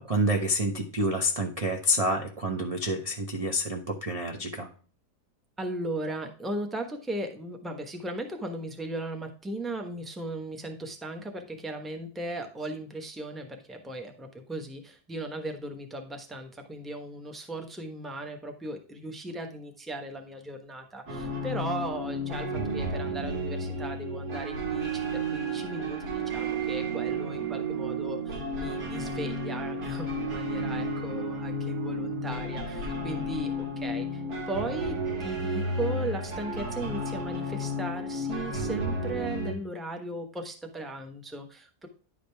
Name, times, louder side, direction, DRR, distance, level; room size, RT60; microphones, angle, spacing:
voice 1, 0.0-4.7, equal, 30° right, 1 dB, 0.8 m, -28 dB
voice 2, 5.6-41.9, right 1 dB, ahead, 4 dB, 0.9 m, -37 dB
sound 1, 21.1-39.5, right 1 dB, 75° right, 2.6 m, -32 dB
10.5 x 5.0 x 3.4 m, 0.40 s
omnidirectional pair, 1.7 m